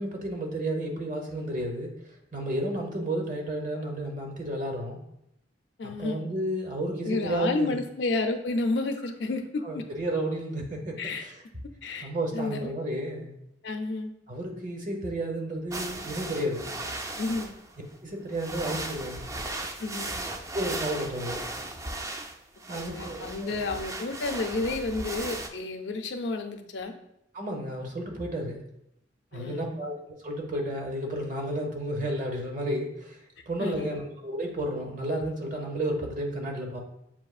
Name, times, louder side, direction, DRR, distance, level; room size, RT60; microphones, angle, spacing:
voice 1, 0.0-5.0 5.8-7.8 9.6-11.4 12.0-13.3 14.3-17.0 18.0-19.3 20.5-21.4 22.7-23.6 27.3-28.6 29.3-29.9 30.2-36.8, right 1 dB, 45° right, 1 dB, 0.9 m, -32 dB
voice 2, 5.8-6.3 7.0-9.8 11.0-11.2 11.8-12.7 13.6-14.1 17.2-17.5 19.8-20.2 22.7-26.9 29.3-29.8 33.6-34.0, left 3 dB, 70° left, 6 dB, 0.5 m, -31 dB
sound 1, 15.7-17.7 18.3-25.5, right 2 dB, 20° right, 0.3 m, -37 dB
7.2 x 2.7 x 2.4 m, 0.80 s
head